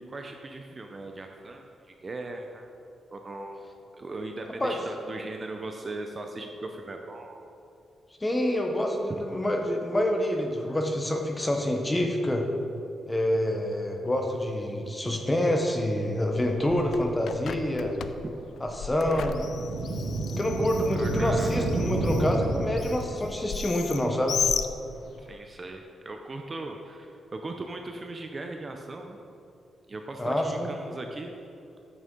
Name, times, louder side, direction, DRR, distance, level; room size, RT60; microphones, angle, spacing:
voice 1, 0.0-2.7 3.1-3.6 4.0-7.4 9.1-9.2 18.2-18.3 21.0-21.5 23.1-23.3 25.2-29.2 29.9-31.3, right 2 dB, 25° right, 3 dB, 0.4 m, -38 dB
voice 2, 8.2-12.4 13.1-18.0 18.6-19.5 20.4-24.4 30.2-30.7, left 1 dB, 10° left, 2 dB, 0.7 m, -27 dB
Bird, 16.4-25.3, left 7 dB, 65° left, 0.3 m, -36 dB
sound 1, 19.3-23.1, right 2 dB, 70° right, 0.9 m, -29 dB
9.0 x 6.4 x 3.7 m, 2.6 s
wide cardioid pair, 180°, 0 cm